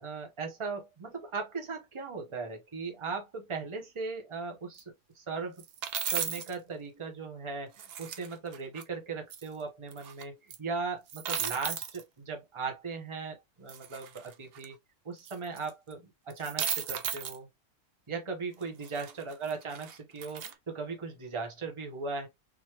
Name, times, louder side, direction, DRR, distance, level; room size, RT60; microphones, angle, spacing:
voice 1, 0.0-4.8 5.1-5.6 6.1-14.7 15.0-17.5 18.1-22.3, right 4 dB, 25° right, 0.9 m, -38 dB
sound 1, 4.8-4.9 5.6-6.5 7.8-8.8 9.3-9.4 9.9-10.2 10.5-10.6 11.1-12.0 13.7-14.6 15.2-15.9 16.3-17.4 18.6-20.5, right 8 dB, 65° right, 0.6 m, -35 dB
3.9 x 3.1 x 2.9 m
omnidirectional pair, 1.6 m